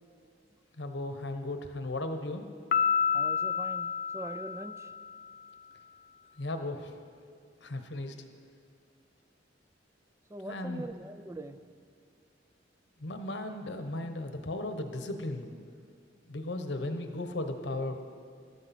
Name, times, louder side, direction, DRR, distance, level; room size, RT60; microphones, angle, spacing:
voice 1, 0.8-2.4 6.4-6.9 7.6-8.1 10.5-10.8 13.0-15.5 16.3-18.0, left 2 dB, 70° left, 7 dB, 1.0 m, -36 dB
Piano, 2.7-5.3, left 7 dB, 50° left, 0.4 m, -30 dB
voice 2, 3.1-4.9 10.3-11.7, right 2 dB, 15° right, 11 dB, 0.3 m, -42 dB
13.5 x 12.5 x 4.3 m, 2.1 s
head